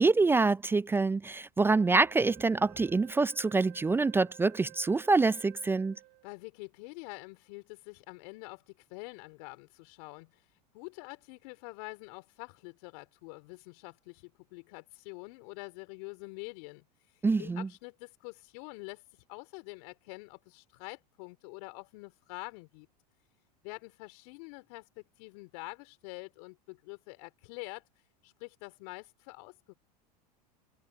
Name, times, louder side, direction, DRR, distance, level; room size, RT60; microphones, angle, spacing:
voice 1, 0.0-6.0 17.2-17.7, right 3 dB, 10° right, 0.4 m, -26 dB
Wind instrument woodwind instrument, 1.7-6.4, right 24 dB, 55° right, 4.8 m, -54 dB
voice 2, 6.2-10.5 10.7-22.9 23.6-27.9 28.2-29.7, left 30 dB, 65° left, 4.2 m, -46 dB
hypercardioid pair, 95°, 21 cm